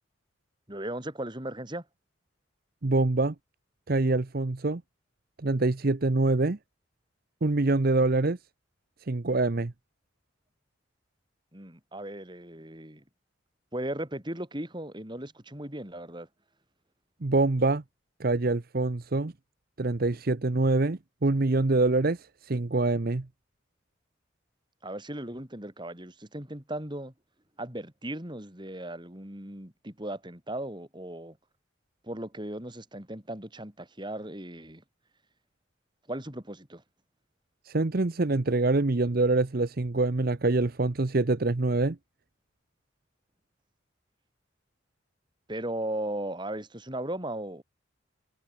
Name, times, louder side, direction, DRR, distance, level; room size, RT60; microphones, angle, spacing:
voice 1, 0.7-1.9 11.5-13.0 13.7-16.3 24.8-27.1 27.6-31.4 32.0-34.8 36.1-36.8 45.5-47.6, right 1 dB, 25° right, 3.6 m, -37 dB
voice 2, 2.8-3.3 3.9-4.8 5.4-6.6 7.4-8.4 9.1-9.7 17.2-17.8 18.2-19.3 19.8-23.3 37.7-42.0, right 2 dB, 50° right, 0.8 m, -25 dB
head